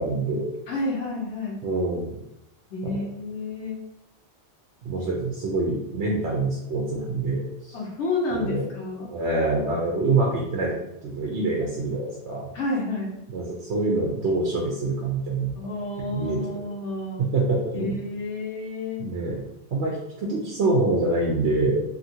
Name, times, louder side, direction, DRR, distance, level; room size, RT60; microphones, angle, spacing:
voice 1, 0.0-0.5 1.6-2.2 2.8-3.0 4.8-7.8 8.3-8.6 9.1-10.7 11.0-12.5 13.3-15.6 16.1-16.4 17.2-18.0 19.0-19.4 19.7-21.8, right 2 dB, 80° right, -3 dB, 0.9 m, -25 dB
voice 2, 0.7-1.6 2.7-3.8 7.7-9.1 12.5-13.2 15.6-17.2 17.7-19.1, left 2 dB, 85° left, -3 dB, 1.0 m, -30 dB
2.7 x 2.6 x 2.7 m, 0.86 s
omnidirectional pair, 1.1 m